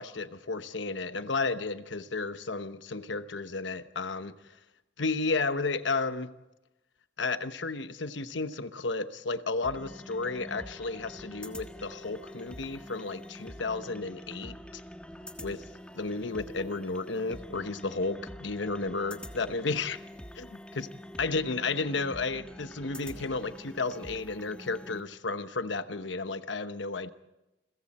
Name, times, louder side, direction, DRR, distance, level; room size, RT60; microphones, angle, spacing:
voice 1, 0.0-4.3 5.0-6.3 7.2-14.6 15.4-15.6 15.9-20.0 20.3-20.9 21.2-27.1, left 3 dB, 80° left, 1.0 m, -33 dB
sound 1, 9.6-25.0, left 1 dB, 5° left, 1.4 m, -45 dB
29.0 x 22.5 x 4.3 m
head